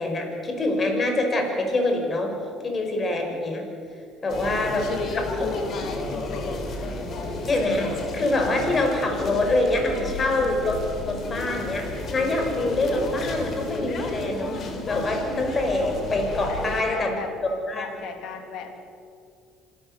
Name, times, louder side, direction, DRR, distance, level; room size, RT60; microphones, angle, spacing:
voice 1, 0.0-2.3 2.6-3.7 4.2-4.9 5.4-5.5 7.5-14.6 14.9-17.9, left 2 dB, 35° left, 4 dB, 5.5 m, -25 dB
sound 1, 4.3-16.8, left 2 dB, 50° left, 3.9 m, -32 dB
voice 2, 4.4-6.8 16.5-17.3 17.7-18.7, left 5 dB, 65° left, 5 dB, 3.2 m, -35 dB
26.5 x 13.5 x 8.3 m, 2.3 s
supercardioid pair, 75°, 0 cm